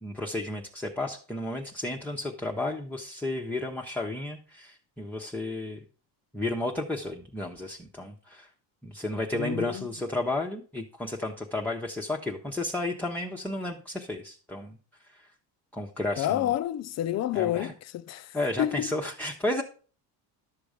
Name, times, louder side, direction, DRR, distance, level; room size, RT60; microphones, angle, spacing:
voice 1, 0.0-5.8 6.3-8.5 8.8-14.8 15.1-15.3 15.7-16.5 17.3-17.7 18.3-19.6, left 2 dB, 5° left, 0.8 m, -32 dB
voice 2, 9.3-9.9 16.2-19.0, left 12 dB, 40° left, 0.6 m, -29 dB
12.0 x 6.8 x 5.0 m
cardioid pair, 140°, 41 cm